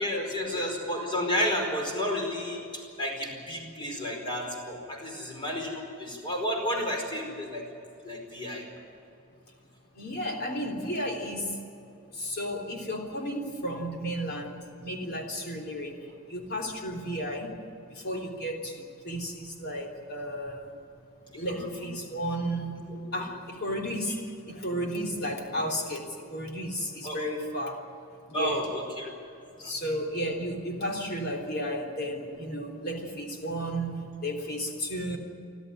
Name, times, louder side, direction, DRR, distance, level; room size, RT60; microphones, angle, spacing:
voice 1, 0.0-7.6 8.0-8.6 21.5-21.9 22.9-23.2 27.0-27.2 28.3-29.1 29.6-29.7, equal, 20° left, 1 dB, 4.8 m, -31 dB
voice 2, 10.0-11.6 12.1-17.5 17.9-20.7 21.3-27.8 28.3-28.6 29.6-35.2, equal, 45° left, 1 dB, 3.5 m, -33 dB
29.0 x 12.5 x 9.9 m, 2.7 s
head